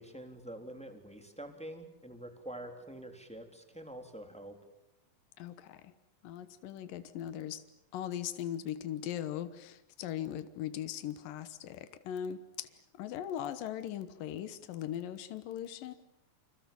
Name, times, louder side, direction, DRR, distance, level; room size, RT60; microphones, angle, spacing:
voice 1, 0.0-4.5, right 1 dB, ahead, 5 dB, 3.0 m, -46 dB
voice 2, 5.4-5.9 6.2-7.6 7.9-15.9, left 10 dB, 85° left, 11 dB, 2.9 m, -39 dB
29.5 x 27.5 x 7.1 m, 0.86 s
omnidirectional pair, 3.9 m